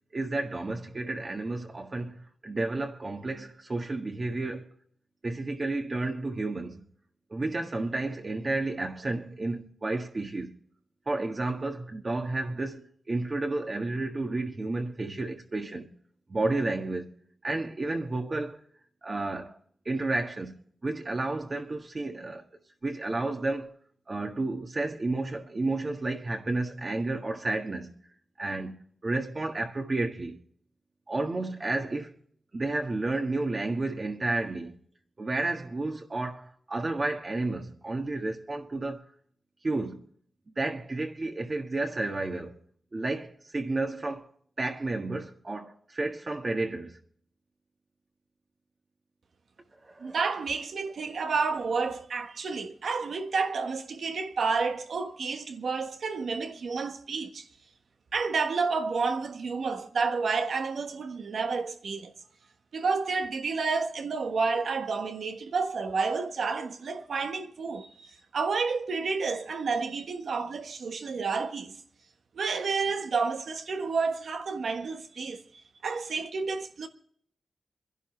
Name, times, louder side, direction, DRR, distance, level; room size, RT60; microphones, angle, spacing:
voice 1, 0.1-4.7 5.2-6.8 7.3-10.6 11.0-15.9 16.3-17.1 17.4-18.6 19.0-19.6 19.8-20.5 20.8-22.4 22.8-23.7 24.1-27.9 28.4-28.7 29.0-30.4 31.1-32.2 32.5-34.7 35.2-39.1 39.6-40.0 40.6-42.6 42.9-44.3 44.6-47.0 49.8-50.2, right 2 dB, 40° right, 1.6 m, -31 dB
voice 2, 50.0-57.4 58.1-62.1 62.7-71.7 72.3-75.4 75.8-76.9, right 4 dB, 85° right, 1.4 m, -30 dB
27.0 x 11.0 x 3.3 m
wide cardioid pair, 80°, 0 cm